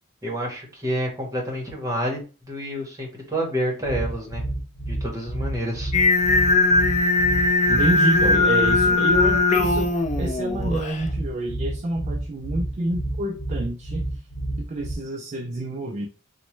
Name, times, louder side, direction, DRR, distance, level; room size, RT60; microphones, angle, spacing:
voice 1, 0.2-2.2 2.5-4.4 4.9-5.9, equal, 15° right, -1 dB, 1.0 m, -28 dB
sound 1, 3.8-14.9, right 1 dB, 75° left, 0.9 m, -30 dB
Singing, 5.9-11.0, left 3 dB, 35° left, 0.4 m, -20 dB
voice 2, 7.7-14.3 14.6-16.1, right 1 dB, 35° right, 2 dB, 0.3 m, -28 dB
3.0 x 2.1 x 3.0 m, 0.34 s
head